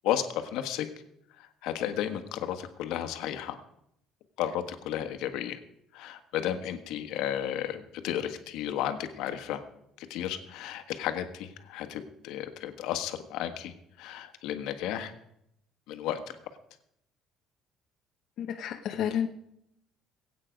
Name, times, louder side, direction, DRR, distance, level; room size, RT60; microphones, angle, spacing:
voice 1, 0.0-0.9 1.4-3.6 4.4-5.6 5.9-9.6 10.0-15.1 15.9-16.2, left 11 dB, 80° left, 8 dB, 1.5 m, -33 dB
voice 2, 18.4-19.3, left 9 dB, 55° left, 3 dB, 0.9 m, -30 dB
21.0 x 8.6 x 5.2 m, 0.76 s
cardioid pair, 165°, 0 cm